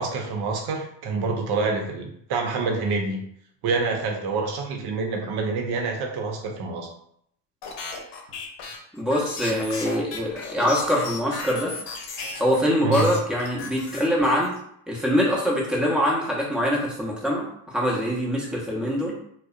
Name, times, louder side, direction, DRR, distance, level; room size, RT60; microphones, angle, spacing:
voice 1, 0.0-3.2 3.6-6.9 12.8-13.1, right 4 dB, 55° right, 2 dB, 0.7 m, -27 dB
sound 1, 7.6-12.6 12.9-14.6, left 4 dB, 65° left, 0.8 m, -35 dB
voice 2, 8.9-11.7 12.4-14.5 14.9-19.2, equal, ahead, -4 dB, 0.7 m, -24 dB
2.6 x 2.1 x 2.4 m, 0.70 s
supercardioid pair, 80°, 47 cm